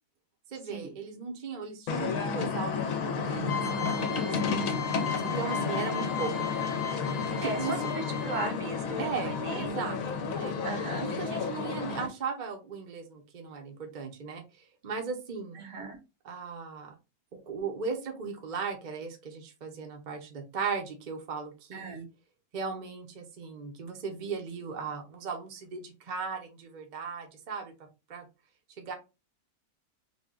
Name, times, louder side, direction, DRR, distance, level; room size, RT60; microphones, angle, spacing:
voice 1, 0.5-6.7 7.4-7.7 9.0-10.5 11.0-15.6 16.2-16.9 17.3-22.1 22.5-27.7 28.1-28.3 28.8-28.9, right 5 dB, 40° right, 3 dB, 0.7 m, -37 dB
sound 1, 1.9-12.1, left 5 dB, 70° left, 1.0 m, -32 dB
sound 2, 3.4-8.7, left 7 dB, 45° left, 1.2 m, -37 dB
voice 2, 7.8-9.9 10.6-11.1 15.5-16.0 21.7-22.1, right 3 dB, 60° right, 4 dB, 1.1 m, -37 dB
3.5 x 2.2 x 3.6 m, 0.27 s
omnidirectional pair, 1.6 m